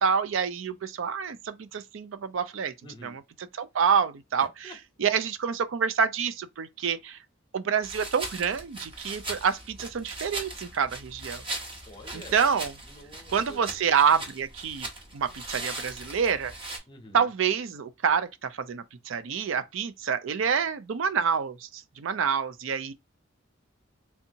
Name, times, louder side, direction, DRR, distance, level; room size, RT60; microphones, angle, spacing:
voice 1, 0.0-2.7 3.0-3.2 3.5-4.7 5.0-7.2 7.5-11.4 12.1-12.7 13.3-14.9 15.1-16.5 17.1-22.9, right 6 dB, 70° right, 0.4 m, -27 dB
voice 2, 2.8-3.2 4.4-4.8 11.9-12.5 12.8-13.7 16.9-17.3, equal, 20° left, 0.8 m, -47 dB
sound 1, 7.8-16.8, right 2 dB, 25° right, 0.8 m, -39 dB
3.4 x 2.7 x 2.7 m
head